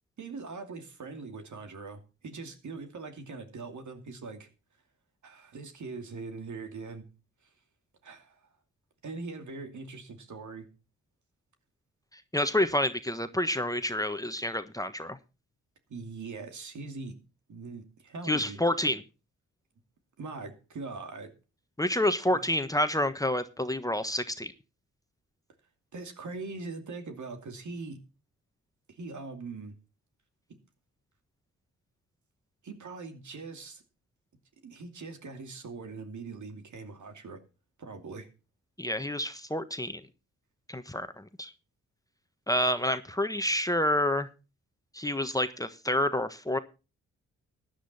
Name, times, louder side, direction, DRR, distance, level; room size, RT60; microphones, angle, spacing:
voice 1, 0.2-4.5 5.2-7.0 8.0-8.4 9.0-10.7 15.9-17.2 17.5-18.6 20.2-21.3 22.3-22.4 25.9-28.0 28.9-29.8 32.6-33.8 34.6-37.4 37.8-38.3, right 3 dB, 60° right, 6 dB, 2.6 m, -41 dB
voice 2, 12.3-15.2 18.3-19.0 21.8-24.5 38.8-40.0 40.7-41.5 42.5-44.3 44.9-46.6, left 1 dB, 10° left, 9 dB, 1.3 m, -28 dB
15.0 x 10.5 x 4.2 m, 0.31 s
supercardioid pair, 45°, 33 cm